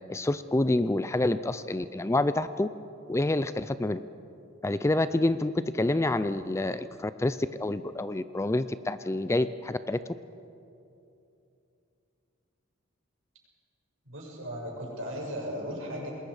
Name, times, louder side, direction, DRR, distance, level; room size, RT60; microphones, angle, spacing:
voice 1, 0.1-2.7 3.1-4.0 4.6-10.0, left 2 dB, 15° left, 13 dB, 0.4 m, -27 dB
voice 2, 14.0-16.1, equal, 75° right, -2 dB, 6.2 m, -36 dB
27.5 x 20.5 x 5.0 m, 2.7 s
head